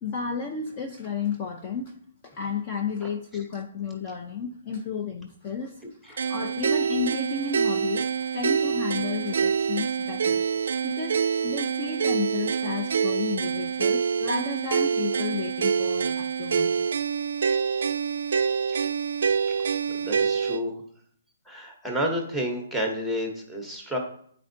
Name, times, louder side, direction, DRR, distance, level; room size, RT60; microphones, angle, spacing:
voice 1, 0.0-1.9 2.2-5.7 6.3-8.1 8.3-10.4 10.8-16.7, left 6 dB, 20° left, 2 dB, 0.4 m, -32 dB
sound 1, 6.2-20.6, right 6 dB, 60° right, 0.4 m, -26 dB
voice 2, 20.0-20.7 21.5-24.0, equal, ahead, 1 dB, 0.8 m, -30 dB
9.4 x 4.2 x 2.6 m, 0.63 s
hypercardioid pair, 175°, 0 cm